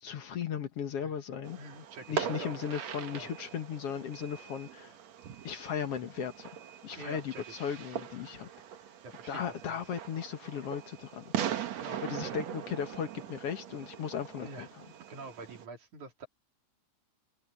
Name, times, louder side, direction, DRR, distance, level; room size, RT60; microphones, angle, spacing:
voice 1, 0.0-1.6 2.1-4.9 5.4-6.5 6.8-8.5 9.3-11.3 12.0-14.7, left 8 dB, 60° left, 2.2 m, -36 dB
Fireworks, 1.4-15.7, right 9 dB, 70° right, 2.7 m, -41 dB
voice 2, 1.5-2.6 3.1-3.3 7.0-7.6 9.0-9.8 11.8-12.4 14.4-14.7 15.1-16.3, right 3 dB, 85° right, 5.2 m, -46 dB
omnidirectional pair, 3.3 m